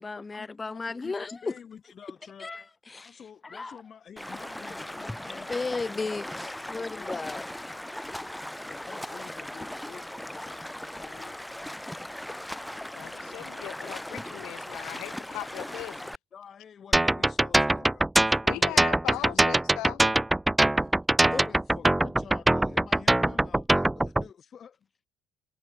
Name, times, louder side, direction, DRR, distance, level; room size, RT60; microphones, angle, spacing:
voice 1, 0.0-1.5 2.4-3.8 5.5-7.5 21.3-21.5, left 3 dB, 25° left, 3.1 m, -35 dB
voice 2, 0.7-1.1 1.4-2.5 3.0-6.1 6.5-7.9 8.7-11.4 16.3-18.9 19.2-19.5 20.8-20.9 21.2-24.9, left 7 dB, 50° left, 6.3 m, -49 dB
Stream, 4.2-16.2, left 1 dB, 5° left, 1.1 m, -38 dB
voice 3, 12.9-16.1 18.4-20.0, left 19 dB, 80° left, 3.1 m, -38 dB
sound 1, 16.9-24.2, right 1 dB, 10° right, 0.3 m, -22 dB
supercardioid pair, 80°, 0 cm